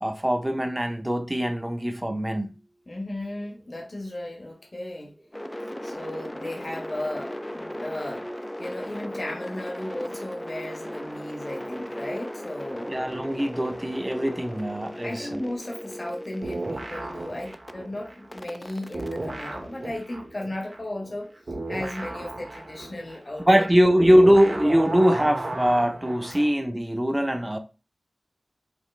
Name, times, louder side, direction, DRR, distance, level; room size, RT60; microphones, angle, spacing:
voice 1, 0.0-2.5 12.9-15.4 23.5-27.6, equal, 15° right, 0.7 m, -22 dB
voice 2, 2.9-5.1 5.8-12.9 15.0-21.3 21.7-23.7, left 1 dB, 50° left, 1.3 m, -35 dB
sound 1, 5.3-17.7 18.3-20.4, equal, 15° left, 0.4 m, -37 dB
sound 2, 16.4-18.7 18.9-26.5, right 2 dB, 65° right, 1.4 m, -35 dB
5.1 x 3.1 x 3.2 m
wide cardioid pair, 55°, 0 cm